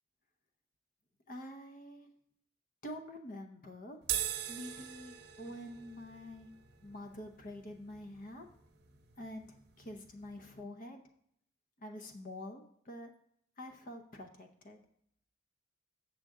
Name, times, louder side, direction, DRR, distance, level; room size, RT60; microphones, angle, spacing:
voice 1, 1.3-2.1 2.8-4.0 4.5-6.5 6.8-8.5 9.2-11.0 11.8-13.1 13.6-14.8, left 1 dB, 45° left, 5 dB, 0.7 m, -47 dB
sound 1, 4.0-10.6, right 11 dB, 55° right, 0.8 m, -43 dB
7.3 x 6.5 x 3.6 m, 0.71 s
head